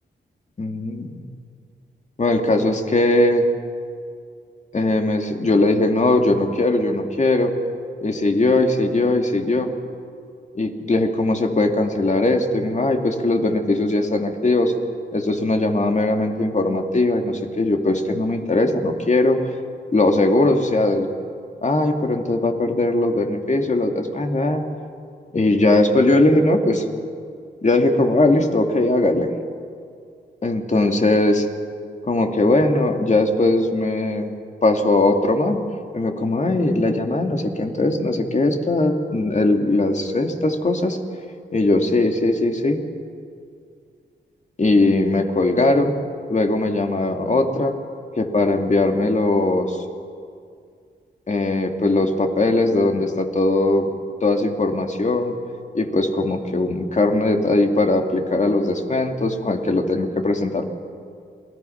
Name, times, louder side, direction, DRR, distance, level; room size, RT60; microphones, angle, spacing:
voice 1, 0.6-1.2 2.2-3.5 4.7-7.5 8.0-9.7 10.5-14.7 15.1-19.4 19.9-21.1 21.6-24.6 25.3-26.8 27.6-29.3 30.4-31.5 32.0-34.3 34.6-35.6 35.9-41.0 41.5-42.8 44.6-45.9 46.3-47.7 48.2-49.8 51.3-53.9 54.2-55.3 55.7-60.7, left 2 dB, 40° left, 4 dB, 2.5 m, -20 dB
28.0 x 19.0 x 5.8 m, 2.3 s
cardioid pair, 65°, 19 cm